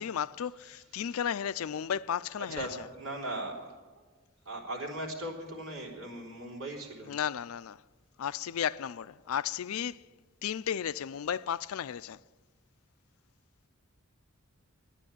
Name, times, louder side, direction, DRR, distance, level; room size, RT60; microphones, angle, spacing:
voice 1, 0.0-2.9 7.1-7.8 8.2-10.0 10.4-12.2, left 8 dB, 80° left, 0.4 m, -34 dB
voice 2, 2.6-3.7 4.5-7.1, right 1 dB, 70° right, 3.8 m, -38 dB
13.0 x 9.8 x 10.0 m
head